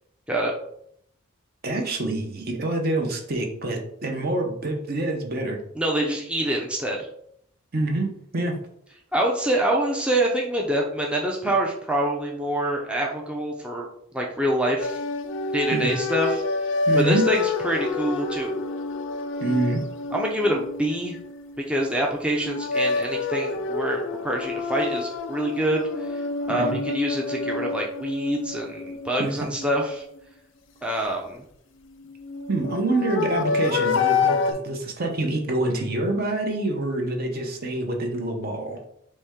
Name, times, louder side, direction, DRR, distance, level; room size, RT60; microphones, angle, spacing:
voice 1, 1.6-5.6 7.7-8.5 15.7-16.0 16.9-17.3 19.4-19.8 26.5-26.8 29.2-29.3 32.5-38.8, right 2 dB, 50° right, 3 dB, 0.8 m, -26 dB
voice 2, 5.8-7.1 9.1-13.9 14.1-15.0 15.5-16.4 16.9-18.6 20.1-21.2 21.7-26.2 26.5-30.0 30.8-31.4, right 1 dB, 5° right, -2 dB, 0.4 m, -26 dB
sound 1, 14.8-21.9 22.3-30.2 31.9-34.5, left 4 dB, 65° left, 0.4 m, -28 dB
4.2 x 3.2 x 3.5 m, 0.71 s
head